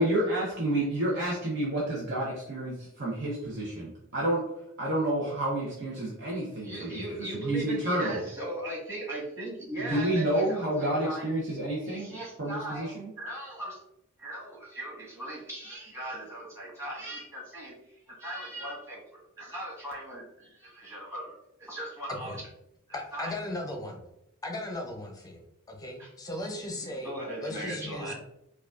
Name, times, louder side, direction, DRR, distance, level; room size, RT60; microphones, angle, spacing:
voice 1, 0.0-4.4 4.8-8.2 9.8-13.1, right 1 dB, 55° right, -5 dB, 0.8 m, -29 dB
voice 2, 6.6-11.3 11.8-13.8 14.2-17.7 18.2-19.0 19.4-21.3 21.6-22.4 23.1-23.3 26.0-26.1 27.0-28.1, right 1 dB, 15° right, -5 dB, 1.4 m, -38 dB
voice 3, 22.9-24.0 24.4-27.1 27.4-28.1, left 1 dB, 15° left, 2 dB, 0.7 m, -37 dB
4.8 x 2.4 x 2.4 m, 0.81 s
head